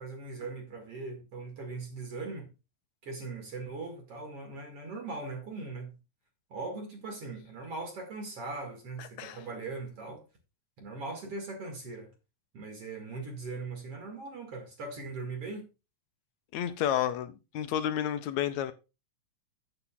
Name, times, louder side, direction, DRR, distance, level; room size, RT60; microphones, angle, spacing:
voice 1, 0.0-2.5 3.0-6.0 6.5-10.2 10.8-12.1 12.5-15.7, right 3 dB, 50° right, 2.8 m, -40 dB
voice 2, 16.5-18.7, left 10 dB, 70° left, 1.9 m, -31 dB
9.3 x 8.1 x 3.8 m
omnidirectional pair, 3.8 m